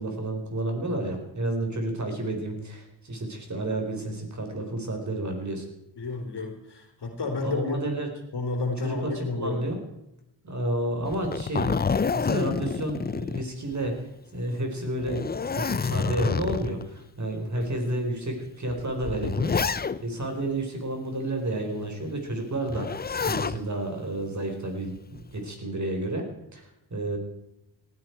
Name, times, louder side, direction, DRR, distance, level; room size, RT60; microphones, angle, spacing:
voice 1, 0.0-5.7 7.4-8.1 8.8-9.8 10.4-14.0 14.3-19.7 20.0-22.9 23.3-26.3 26.5-27.2, right 1 dB, 35° right, 3 dB, 4.6 m, -31 dB
voice 2, 6.0-7.8 8.3-9.6, left 3 dB, 55° left, 3 dB, 3.9 m, -31 dB
Zipper (clothing), 11.1-14.0 14.4-14.5 15.0-16.8 17.6-17.7 18.7-20.2 22.7-23.6 25.0-25.4, left 5 dB, 20° left, 0.5 m, -28 dB
18.5 x 13.5 x 4.7 m, 0.88 s
cardioid pair, 60°, 46 cm